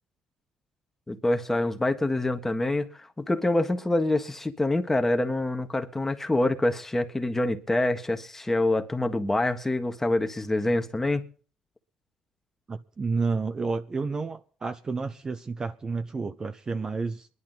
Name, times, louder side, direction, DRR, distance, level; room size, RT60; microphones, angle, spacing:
voice 1, 1.1-11.3, left 2 dB, 15° left, 1.6 m, -26 dB
voice 2, 12.7-17.3, right 4 dB, 30° right, 0.8 m, -30 dB
21.5 x 11.0 x 4.0 m
cardioid pair, 95°, 2 cm